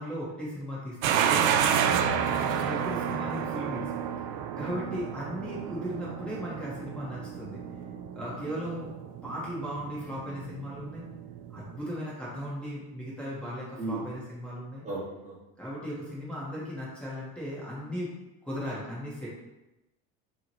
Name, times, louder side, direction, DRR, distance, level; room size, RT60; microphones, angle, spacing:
voice 1, 0.0-1.7 2.4-3.9 4.3-7.6 8.1-11.0 11.5-14.8 15.6-18.1 18.4-19.3, equal, 5° left, -8 dB, 1.3 m, -37 dB
sound 1, 1.0-11.8, right 8 dB, 75° right, 0.5 m, -30 dB
voice 2, 2.0-2.4 4.6-4.7 13.8-14.0 14.8-15.4, right 2 dB, 25° right, -8 dB, 1.3 m, -36 dB
4.9 x 3.1 x 3.0 m, 0.97 s
cardioid pair, 130°, 30 cm